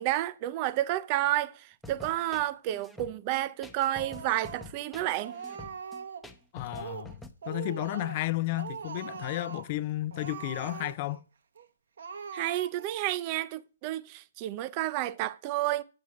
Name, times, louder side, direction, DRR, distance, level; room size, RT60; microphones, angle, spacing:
voice 1, 0.0-5.4 12.3-15.8, right 14 dB, 35° right, 0.6 m, -30 dB
sound 1, 1.8-7.3, left 3 dB, ahead, 0.8 m, -47 dB
Speech, 3.9-4.8 5.2-6.3 6.6-7.1 7.4-8.3 8.5-9.7 10.1-11.2 11.5-11.7 12.0-13.0, right 6 dB, 75° right, 1.0 m, -41 dB
voice 2, 6.5-7.1 7.5-11.2, left 17 dB, 40° left, 0.5 m, -32 dB
8.1 x 7.8 x 4.7 m
hypercardioid pair, 145°, 0 cm